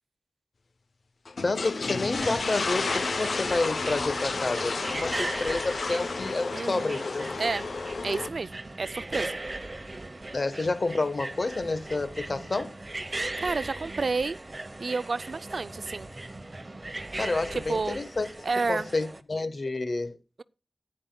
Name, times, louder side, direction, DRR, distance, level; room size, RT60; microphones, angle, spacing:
sound 1, 1.3-8.3, left 4 dB, 75° left, 0.7 m, -31 dB
voice 1, 1.4-7.3 10.3-12.7 17.2-18.3 18.7-20.2, left 3 dB, 55° left, 1.1 m, -29 dB
sound 2, 2.1-19.2, right 2 dB, 35° right, 0.9 m, -38 dB
voice 2, 6.5-7.0 7.4-7.7 8.0-9.4 13.1-14.4 14.8-16.1 17.5-18.0 18.4-18.9, right 4 dB, 70° right, 0.4 m, -30 dB
14.5 x 10.0 x 2.3 m
wide cardioid pair, 75°, 0 cm